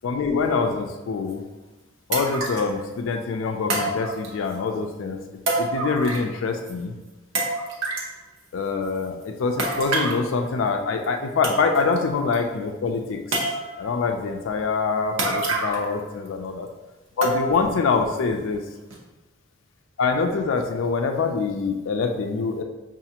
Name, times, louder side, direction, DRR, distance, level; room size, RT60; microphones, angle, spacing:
voice 1, 0.0-1.5 2.1-5.2 5.6-6.9 8.5-13.4 13.8-16.7 17.2-18.6 20.0-22.6, left 4 dB, 75° left, 4 dB, 0.4 m, -25 dB
sound 1, 1.3-1.4 2.1-2.7 3.7-4.6 5.5-6.4 6.7-6.8 7.4-8.1 9.6-10.2 11.0-11.1 11.4-12.0 12.3-12.4 13.3-13.9 15.2-16.0 16.3-16.4 17.2-17.7 18.2-18.3 18.9-19.0, right 2 dB, 70° right, 0.8 m, -27 dB
5.7 x 2.4 x 2.8 m, 1.1 s
head